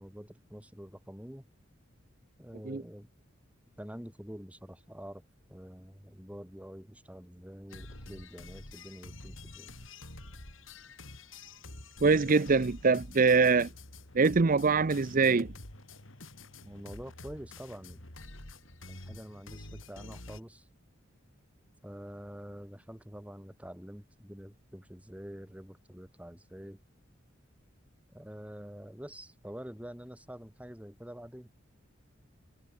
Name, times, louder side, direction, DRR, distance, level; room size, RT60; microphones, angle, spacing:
voice 1, 0.0-1.5 2.4-3.1 3.8-5.2 5.5-9.7 16.6-18.0 18.9-20.7 21.8-26.8 28.1-31.5, equal, 5° right, 2.9 m, -46 dB
sound 1, 7.7-20.4, left 2 dB, 80° left, 5.9 m, -48 dB
voice 2, 12.0-13.7 14.1-15.5, right 4 dB, 45° right, 0.6 m, -24 dB
head